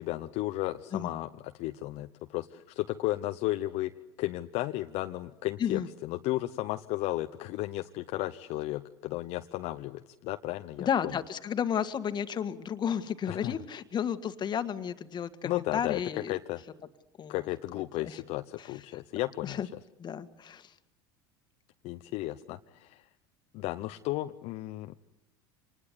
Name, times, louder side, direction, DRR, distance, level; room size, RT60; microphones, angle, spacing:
voice 1, 0.0-3.9 4.2-11.1 13.3-13.5 15.4-16.0 16.3-16.6 17.3-19.6 21.8-23.0 23.5-24.9, left 17 dB, 60° left, 7 dB, 0.9 m, -34 dB
voice 2, 10.8-16.3 17.2-17.5 18.0-18.2 18.6-19.0 19.4-19.7 20.0-20.7, left 8 dB, 35° left, 10 dB, 1.8 m, -32 dB
26.0 x 20.0 x 9.7 m, 0.89 s
hypercardioid pair, 95°, 13 cm